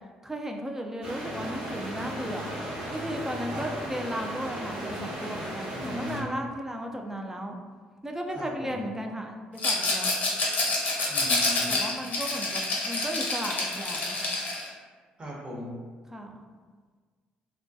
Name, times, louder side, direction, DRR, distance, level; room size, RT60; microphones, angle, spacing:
voice 1, 0.2-2.5 2.9-7.6 8.0-10.1 11.7-14.3 16.1-16.4, equal, 10° right, 3 dB, 0.4 m, -35 dB
sound 1, 1.0-6.2, right 1 dB, 60° right, 1.0 m, -36 dB
voice 2, 5.7-6.4 8.4-8.8 11.1-11.8 15.2-15.8, equal, 30° right, -4 dB, 0.9 m, -38 dB
Rattle, 9.6-14.7, left 2 dB, 55° left, 0.7 m, -27 dB
2.2 x 2.2 x 2.6 m, 1.5 s
hypercardioid pair, 55°, 4 cm